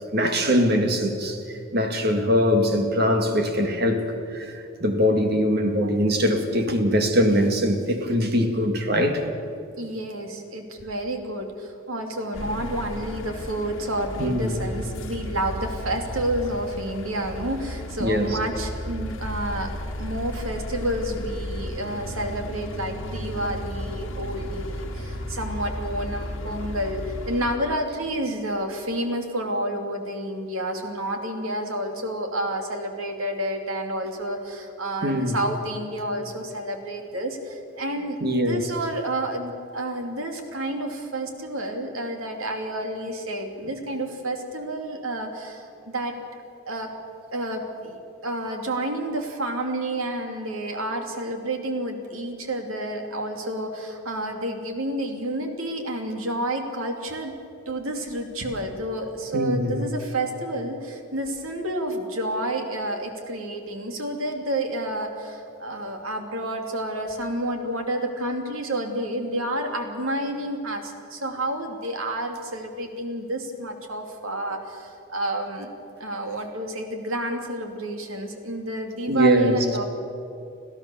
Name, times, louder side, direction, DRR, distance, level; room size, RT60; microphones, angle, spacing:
voice 1, 0.1-1.4 1.7-4.0 4.3-4.5 4.8-9.2 14.2-14.6 18.0-18.4 35.0-35.4 38.2-38.6 59.3-59.8 79.1-79.6, equal, 50° right, 2.0 m, -22 dB
voice 2, 9.8-19.7 20.0-46.1 46.6-46.9 47.3-57.3 57.7-75.7 76.0-79.8, right 1 dB, 80° right, 2.7 m, -30 dB
sound 1, 12.3-27.6, left 1 dB, 70° left, 1.8 m, -34 dB
26.0 x 15.5 x 7.1 m
head